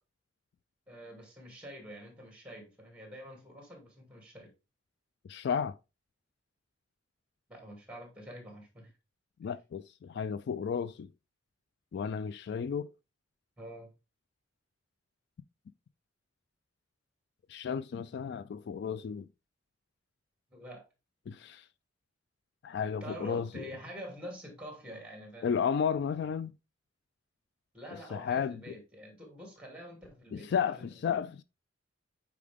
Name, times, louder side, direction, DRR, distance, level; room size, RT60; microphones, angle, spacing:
voice 1, 0.9-4.5 7.5-8.9 9.4-9.5 13.6-13.9 20.5-20.8 23.0-25.5 27.7-31.2, equal, 5° right, 2.6 m, -47 dB
voice 2, 5.3-5.8 9.4-11.1 11.9-12.9 17.5-19.3 21.3-21.7 22.6-23.7 25.4-26.5 27.9-28.8 30.3-31.4, left 7 dB, 60° left, 0.3 m, -33 dB
8.4 x 4.7 x 3.5 m
head